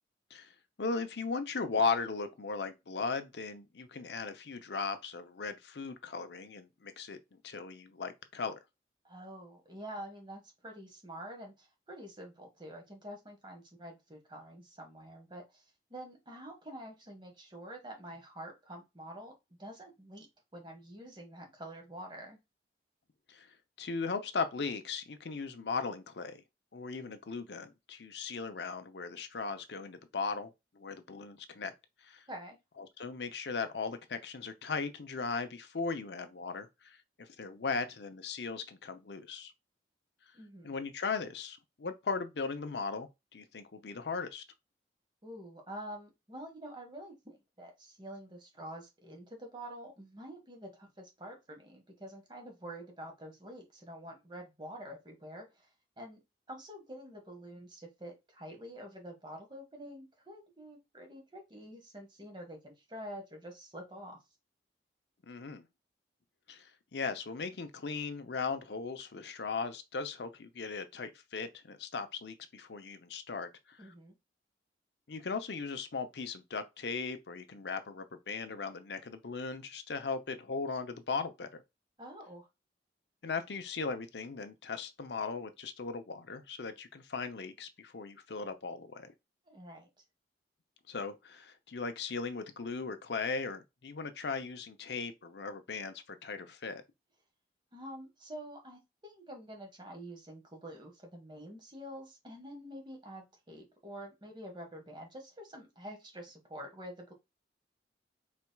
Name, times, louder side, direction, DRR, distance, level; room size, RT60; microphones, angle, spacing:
voice 1, 0.8-7.2 7.4-8.6 23.3-23.5 23.8-26.4 26.7-31.7 32.0-32.2 32.8-39.5 40.6-44.4 65.2-65.7 66.5-73.9 75.1-81.6 83.2-89.1 90.9-96.8, left 4 dB, 75° left, 0.7 m, -38 dB
voice 2, 9.0-15.6 15.9-20.3 20.5-22.4 32.3-32.6 40.3-40.7 45.2-55.7 56.0-56.2 56.5-64.2 73.8-74.2 82.0-82.5 89.5-89.9 97.7-107.1, equal, 25° right, 1.5 m, -47 dB
4.5 x 4.1 x 2.3 m
head